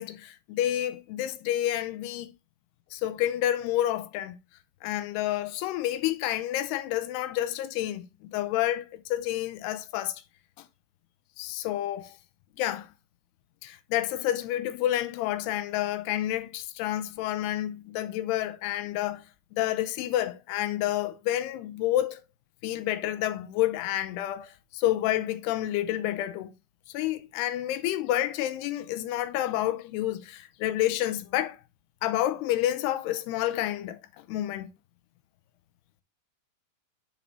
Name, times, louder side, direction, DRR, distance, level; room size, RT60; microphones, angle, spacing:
voice 1, 0.0-2.3 2.9-4.4 4.8-10.2 10.6-10.7 11.4-12.2 12.6-12.9 13.6-19.2 19.5-22.2 22.6-26.5 26.9-31.6 32.0-34.7, left 13 dB, 90° left, 2.7 m, -29 dB
8.3 x 5.1 x 3.1 m
omnidirectional pair, 4.6 m